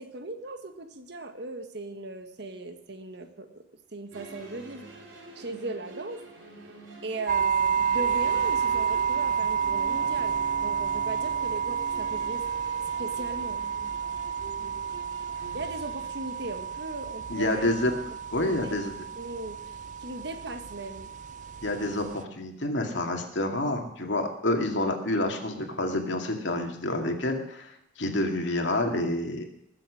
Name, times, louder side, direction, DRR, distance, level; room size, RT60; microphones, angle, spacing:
voice 1, 0.0-3.6 3.9-6.2 7.0-12.4 13.0-13.6 15.5-17.7 18.4-18.7 19.2-21.1, right 2 dB, 60° right, 7 dB, 1.5 m, -38 dB
sound 1, 4.1-19.4, right 2 dB, 80° right, 3.5 m, -46 dB
sound 2, 7.3-22.2, right 7 dB, 40° right, 0.4 m, -30 dB
voice 2, 17.3-17.9 18.3-18.9 21.6-27.7 28.0-29.5, left 1 dB, 65° left, 4 dB, 2.3 m, -28 dB
20.5 x 7.5 x 6.3 m, 0.79 s
head